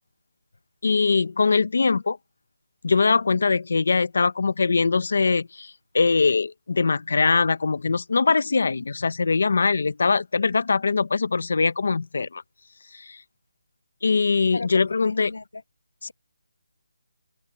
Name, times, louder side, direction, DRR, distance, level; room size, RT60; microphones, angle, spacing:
voice 1, 0.8-2.2 2.8-12.4 12.9-13.2 14.0-15.3 16.0-16.1, left 4 dB, 50° left, 1.2 m, -22 dB
voice 2, 14.5-15.6, left 3 dB, 85° left, 7.2 m, -36 dB
hypercardioid pair, 175°, 0 cm